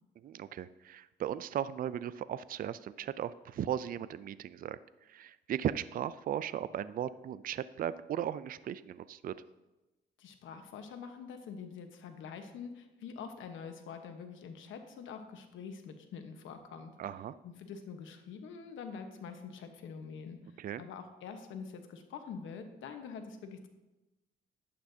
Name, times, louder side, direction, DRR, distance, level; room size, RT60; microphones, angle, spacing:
voice 1, 0.2-9.4 17.0-17.4 20.6-20.8, right 10 dB, 45° right, 16 dB, 0.4 m, -37 dB
voice 2, 10.2-16.9 17.4-23.7, left 6 dB, 80° left, 6 dB, 1.1 m, -45 dB
11.5 x 8.6 x 2.8 m, 1.0 s
cardioid pair, 90°, 20 cm